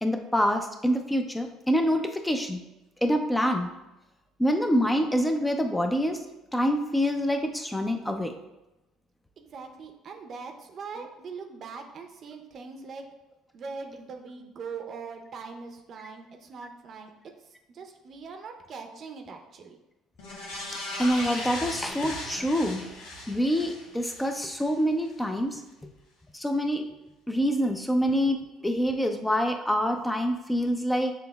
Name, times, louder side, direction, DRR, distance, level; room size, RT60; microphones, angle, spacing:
voice 1, 0.0-2.6 3.0-3.7 4.4-6.2 6.5-8.3 10.9-11.0 21.0-22.9 23.3-25.6 26.3-26.9 27.3-31.1, equal, 10° left, 4 dB, 0.5 m, -26 dB
voice 2, 9.4-13.0 13.5-17.1 17.7-19.8, right 5 dB, 50° right, 5 dB, 0.7 m, -41 dB
sound 1, 20.2-24.7 25.1-25.2, left 2 dB, 80° left, 1.3 m, -38 dB
6.8 x 3.4 x 2.3 m, 0.96 s
hypercardioid pair, 65°, 0 cm